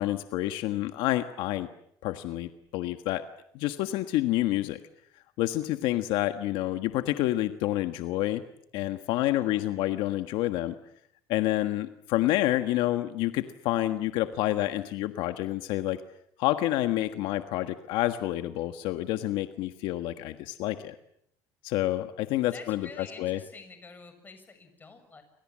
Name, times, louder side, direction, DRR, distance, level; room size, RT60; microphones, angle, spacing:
voice 1, 0.0-1.7 2.0-3.2 3.5-4.8 5.4-8.4 8.7-10.8 11.3-16.0 16.4-20.9 21.6-23.4, left 15 dB, 75° left, 9 dB, 1.6 m, -28 dB
voice 2, 9.3-9.7 22.5-25.2, left 4 dB, 20° left, 8 dB, 7.1 m, -48 dB
29.5 x 26.0 x 7.6 m, 0.72 s
cardioid pair, 125°, 9 cm